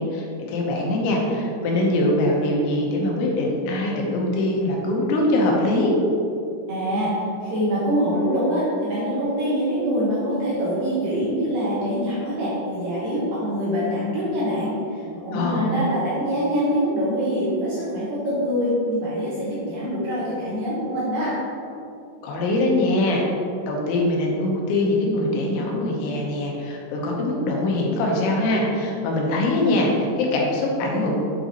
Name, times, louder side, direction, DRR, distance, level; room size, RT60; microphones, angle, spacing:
voice 1, 0.1-5.9 15.3-15.7 22.2-23.3 23.7-31.1, left 1 dB, 75° left, -1 dB, 3.1 m, -22 dB
voice 2, 6.7-7.1 7.4-21.3, equal, 75° right, -8 dB, 2.0 m, -24 dB
7.8 x 5.3 x 2.9 m, 2.7 s
omnidirectional pair, 5.5 m